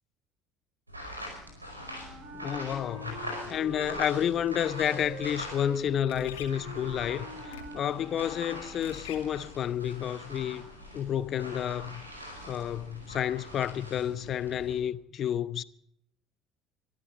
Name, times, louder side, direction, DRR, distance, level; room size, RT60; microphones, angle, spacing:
sound 1, 0.9-5.9 6.2-14.8, equal, 90° right, 4.8 m, -43 dB
Wind instrument woodwind instrument, 1.7-9.1, right 2 dB, 55° right, 4.9 m, -45 dB
voice 1, 2.3-10.7 10.9-12.1 12.4-15.6, left 10 dB, 45° left, 0.9 m, -30 dB
sound 2, 5.0-9.9, left 8 dB, 70° left, 2.3 m, -49 dB
24.5 x 13.5 x 4.2 m
figure-of-eight pair, 60°, 0 cm